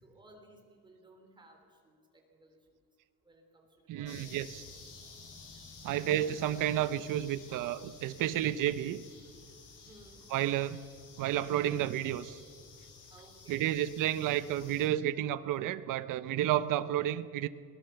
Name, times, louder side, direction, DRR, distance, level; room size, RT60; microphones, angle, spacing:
voice 1, 0.0-2.9 3.2-3.7 3.9-4.8 9.8-10.2 13.1-13.7, right 1 dB, 15° right, 2 dB, 3.6 m, -59 dB
voice 2, 3.9-4.6 5.8-9.0 10.3-10.8 11.2-12.4 13.5-17.5, right 12 dB, 90° right, 14 dB, 0.8 m, -31 dB
sound 1, 4.0-14.9, left 4 dB, 75° left, 6.2 m, -52 dB
21.5 x 19.5 x 6.9 m, 2.2 s
cardioid pair, 175°, 31 cm